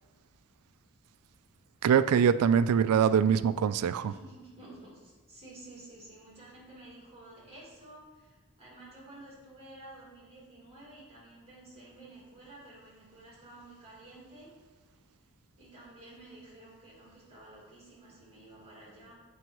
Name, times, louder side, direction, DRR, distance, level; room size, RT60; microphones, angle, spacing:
voice 1, 1.8-4.1, right 7 dB, 80° right, 15 dB, 0.3 m, -23 dB
voice 2, 4.0-14.5 15.6-19.2, right 2 dB, 25° right, -6 dB, 2.1 m, -52 dB
7.9 x 5.2 x 3.0 m, 1.3 s
head